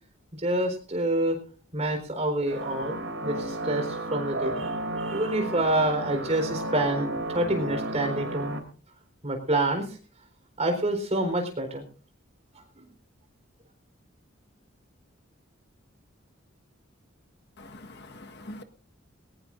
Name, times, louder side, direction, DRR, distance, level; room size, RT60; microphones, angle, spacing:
voice 1, 0.3-1.4 1.7-8.6 9.2-10.0 10.6-11.8 12.5-12.8, right 1 dB, 35° right, 4 dB, 4.2 m, -27 dB
sound 1, 2.5-8.6, right 1 dB, 70° right, 3.0 m, -33 dB
voice 2, 17.6-18.6, left 1 dB, 55° left, 6 dB, 1.5 m, -44 dB
21.0 x 18.0 x 2.6 m, 0.40 s
head